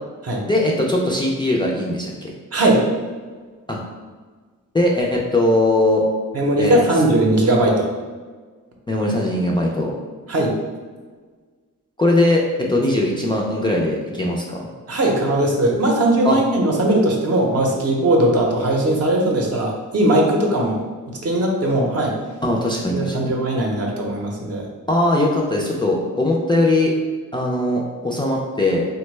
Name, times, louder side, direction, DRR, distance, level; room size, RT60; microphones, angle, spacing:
voice 1, 0.5-2.3 3.7-3.8 4.7-6.0 6.6-6.8 8.9-9.9 12.0-14.7 16.2-16.4 22.4-23.4 24.9-26.9 27.3-28.9, left 1 dB, 15° left, -2 dB, 0.3 m, -20 dB
voice 2, 2.5-2.8 6.3-7.9 10.3-10.5 14.9-20.8 21.2-22.1 22.9-24.6, right 1 dB, 50° right, 0 dB, 0.7 m, -19 dB
3.4 x 2.1 x 3.1 m, 1.4 s
cardioid pair, 95°, 33 cm